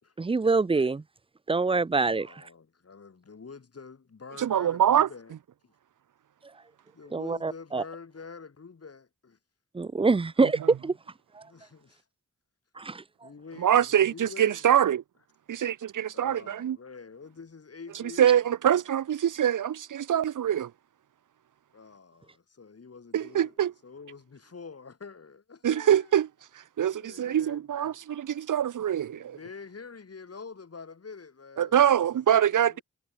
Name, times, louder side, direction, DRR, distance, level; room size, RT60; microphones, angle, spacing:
voice 1, 0.2-1.0 1.5-2.4 7.1-7.8 9.7-11.0 12.8-13.0, right 3 dB, 20° right, 0.5 m, -25 dB
voice 2, 2.0-5.3 5.6-5.7 6.9-9.4 11.4-12.0 13.2-14.7 16.1-18.4 21.7-23.6 23.8-26.2 26.9-28.0 28.9-32.8, left 5 dB, 50° left, 7.1 m, -47 dB
voice 3, 4.4-5.1 10.4-10.7 13.6-15.0 15.5-16.8 18.2-20.7 23.1-23.7 25.6-26.3 26.8-29.4 31.6-32.8, right 10 dB, 90° right, 1.7 m, -24 dB
cardioid pair, 60°, 30 cm